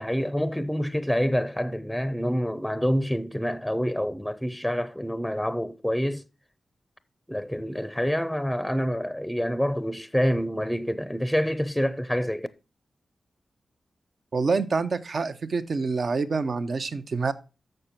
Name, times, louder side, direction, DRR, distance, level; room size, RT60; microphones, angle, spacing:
voice 1, 0.0-6.2 7.3-12.5, equal, 5° left, 0.6 m, -27 dB
voice 2, 14.3-17.3, right 4 dB, 65° right, 0.8 m, -26 dB
6.7 x 6.6 x 5.8 m
cardioid pair, 60°, 0 cm